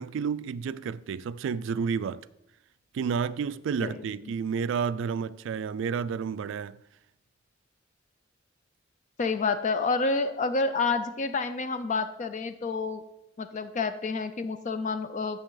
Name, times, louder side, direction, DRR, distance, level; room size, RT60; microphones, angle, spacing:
voice 1, 0.0-2.3 2.9-6.8, right 6 dB, 65° right, 0.3 m, -30 dB
voice 2, 9.2-13.0 13.4-15.4, left 4 dB, 40° left, 0.4 m, -29 dB
8.9 x 7.0 x 3.8 m
head